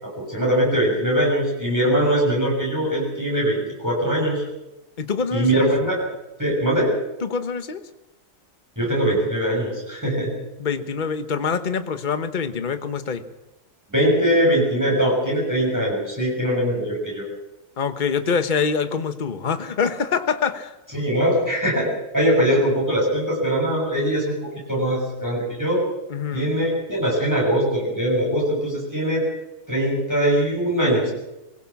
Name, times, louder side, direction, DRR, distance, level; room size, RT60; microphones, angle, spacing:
voice 1, 0.0-4.4 5.3-6.0 6.4-6.9 8.8-10.3 13.9-17.2 20.9-21.9 22.1-24.3 24.7-25.8 26.3-29.2 29.7-31.1, right 1 dB, 10° right, -3 dB, 6.7 m, -21 dB
voice 2, 5.0-5.7 7.2-7.8 10.6-13.2 17.8-20.7 26.1-26.5, left 5 dB, 35° left, 10 dB, 1.2 m, -25 dB
22.0 x 16.5 x 7.2 m, 0.96 s
omnidirectional pair, 1.7 m